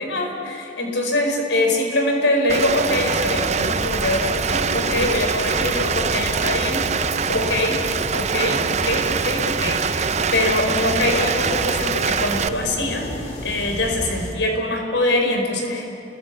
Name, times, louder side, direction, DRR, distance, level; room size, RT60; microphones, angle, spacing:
voice 1, 0.0-7.8 8.1-13.1 13.4-15.9, left 1 dB, 80° left, 3 dB, 4.8 m, -23 dB
Rain, 2.5-12.5, right 6 dB, 40° right, 0.6 m, -24 dB
sound 1, 2.9-14.3, equal, 40° left, 3.1 m, -32 dB
29.5 x 22.0 x 8.3 m, 2.7 s
head